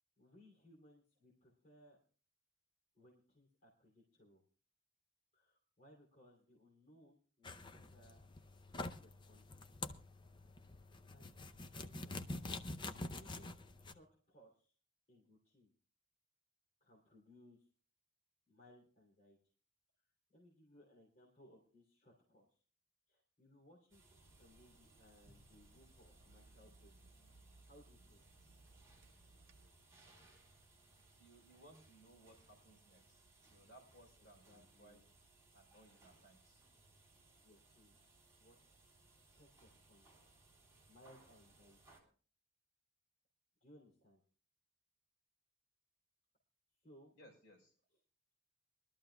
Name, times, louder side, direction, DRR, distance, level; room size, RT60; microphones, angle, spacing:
voice 1, 0.2-2.0 2.9-4.4 5.3-8.3 8.6-9.8 11.1-11.4 11.6-12.3 13.1-14.7 15.1-15.7 16.8-17.7 18.5-19.4 20.0-20.1 20.3-22.6 23.1-24.0 24.4-26.9 27.6-28.2 34.5-35.1 37.4-38.0 38.4-38.6 39.2-40.1 40.9-41.8 43.6-44.2 46.8-47.1 47.9-48.0, equal, 40° left, -3 dB, 3.1 m, -65 dB
sound 1, 7.4-13.9, left 2 dB, 25° left, 0.6 m, -47 dB
sound 2, 23.9-42.0, right 2 dB, 15° right, 3.4 m, -67 dB
Water tap faucet / Sink (filling or washing), 24.2-29.7, right 2 dB, 70° right, 0.8 m, -65 dB
voice 2, 31.2-35.0 35.5-36.6 47.2-47.7, right 1 dB, 55° left, 0 dB, 5.5 m, -63 dB
23.0 x 13.0 x 2.3 m, 0.40 s
head